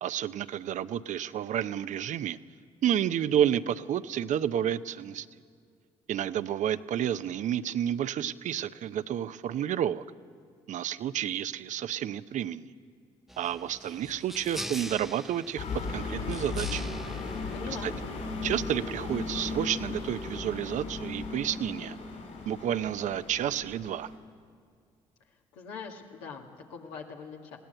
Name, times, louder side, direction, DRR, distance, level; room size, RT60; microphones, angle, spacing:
voice 1, 0.0-2.4 2.8-5.3 6.1-10.0 10.7-12.7 13.4-16.9 17.8-17.9 18.4-22.0 22.4-24.1, right 10 dB, 65° right, 13 dB, 0.6 m, -30 dB
sound 1, 13.3-18.3, equal, ahead, 0.6 m, -43 dB
sound 2, 15.6-24.2, left 3 dB, 70° left, 5.2 m, -36 dB
voice 2, 17.5-17.9 25.5-27.6, left 6 dB, 90° left, 1 dB, 1.9 m, -42 dB
21.0 x 16.5 x 7.9 m, 2.2 s
supercardioid pair, 60°, 14 cm